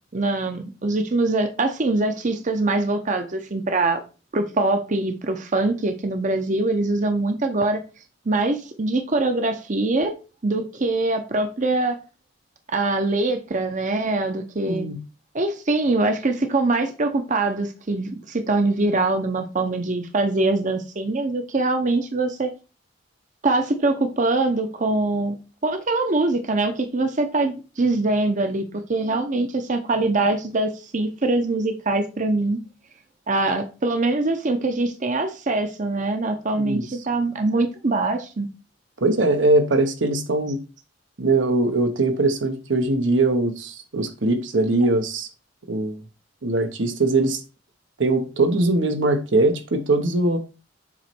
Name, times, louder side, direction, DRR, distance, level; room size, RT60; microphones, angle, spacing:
voice 1, 0.1-4.0 4.3-7.8 8.3-10.1 10.4-12.0 12.7-14.9 15.3-22.5 23.4-25.4 25.6-32.6 33.3-38.5, right 2 dB, 40° right, 0.7 m, -23 dB
voice 2, 14.7-15.0 36.6-36.8 39.0-40.6 41.2-45.3 45.7-46.0 46.4-47.4 48.0-50.4, right 2 dB, 80° right, 1.0 m, -21 dB
7.3 x 3.1 x 4.5 m
head